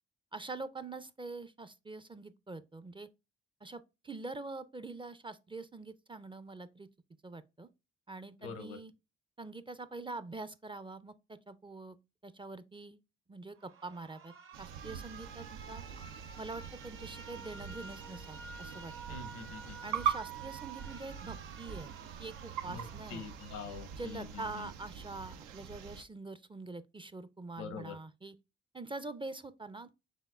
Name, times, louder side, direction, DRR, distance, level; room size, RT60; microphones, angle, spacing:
voice 1, 0.3-3.1 3.6-6.9 7.2-7.7 8.1-8.9 9.4-12.0 12.2-13.0 13.3-14.3 14.6-15.8 16.4-19.2 19.8-21.9 22.2-23.3 24.0-28.4 28.7-29.9, right 3 dB, 15° right, 0.4 m, -45 dB
voice 2, 8.4-8.8 19.1-19.8 22.7-22.8 23.1-24.7 27.6-28.0, left 6 dB, 80° left, 0.8 m, -44 dB
Alarm, 13.6-24.6, right 5 dB, 45° right, 0.7 m, -50 dB
sound 1, 14.5-26.0, right 8 dB, 85° right, 0.5 m, -42 dB
5.4 x 3.6 x 2.3 m
hypercardioid pair, 45°, 30 cm